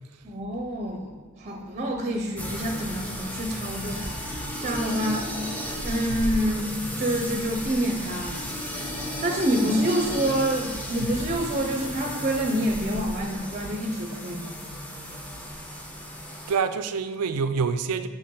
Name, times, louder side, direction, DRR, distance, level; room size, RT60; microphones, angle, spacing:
voice 1, 0.2-8.4 9.2-14.6, right 1 dB, 30° right, 2 dB, 0.7 m, -27 dB
sound 1, 2.4-16.6, equal, 5° left, 0.8 m, -34 dB
voice 2, 16.5-18.1, right 5 dB, 90° right, 11 dB, 0.5 m, -26 dB
6.8 x 6.0 x 3.8 m, 1.4 s
head